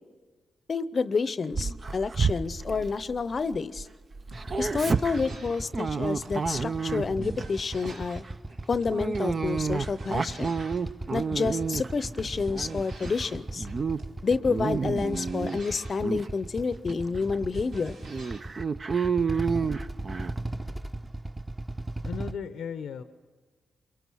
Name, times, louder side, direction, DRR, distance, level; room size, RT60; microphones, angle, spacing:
voice 1, 0.7-3.9 4.6-8.2 8.7-10.5 11.1-13.7 14.2-18.0, left 4 dB, 50° left, 15 dB, 0.7 m, -29 dB
Dog, 1.5-3.8 4.1-7.5 7.8-8.1 8.9-12.0 12.5-13.2 13.6-14.0 14.3-15.6 16.0-16.3 16.9-17.0 17.3-17.4 18.1-20.4, right 5 dB, 45° right, 0.7 m, -30 dB
sound 1, 4.2-18.4, right 2 dB, 85° right, 2.6 m, -46 dB
Motorcycle / Idling, 4.4-22.3, right 2 dB, 20° right, 1.1 m, -38 dB
voice 2, 22.0-23.0, left 6 dB, 80° left, 10 dB, 0.7 m, -35 dB
23.0 x 22.5 x 6.3 m, 1.4 s
supercardioid pair, 50°, 0 cm